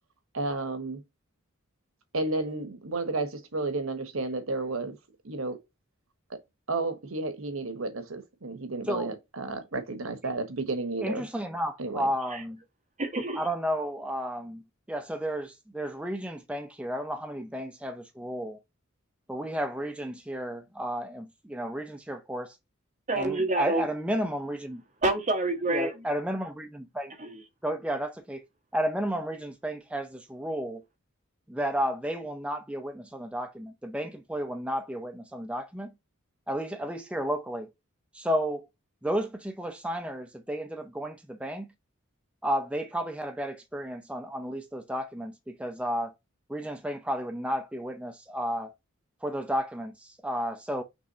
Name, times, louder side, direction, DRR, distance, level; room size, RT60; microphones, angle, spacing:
voice 1, 0.3-1.0 2.1-5.0 5.2-5.6 6.3-6.4 6.7-11.2 11.8-12.1, right 3 dB, 80° right, 1.2 m, -32 dB
voice 2, 11.0-12.6 13.3-14.6 14.9-18.6 19.3-22.6 23.1-24.8 25.7-27.1 27.6-28.4 28.7-30.8 31.5-35.9 36.5-37.7 38.1-38.7 39.0-41.7 42.4-46.1 46.5-48.7 49.2-50.8, equal, 5° right, 0.5 m, -32 dB
voice 3, 13.0-13.4 23.1-23.8 25.0-25.9 27.2-27.3, right 2 dB, 35° right, 1.5 m, -27 dB
6.0 x 3.2 x 2.7 m
head